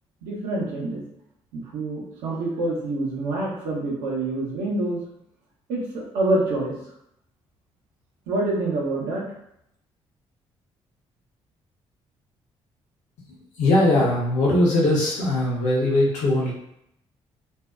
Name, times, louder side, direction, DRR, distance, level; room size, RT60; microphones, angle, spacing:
voice 1, 0.2-1.0 1.5-5.0 5.7-6.7 8.3-9.3, right 2 dB, 65° right, -3 dB, 0.7 m, -26 dB
voice 2, 13.6-16.5, left 1 dB, 55° left, -4 dB, 0.7 m, -20 dB
2.5 x 2.1 x 2.3 m, 0.77 s
figure-of-eight pair, 40°, 15 cm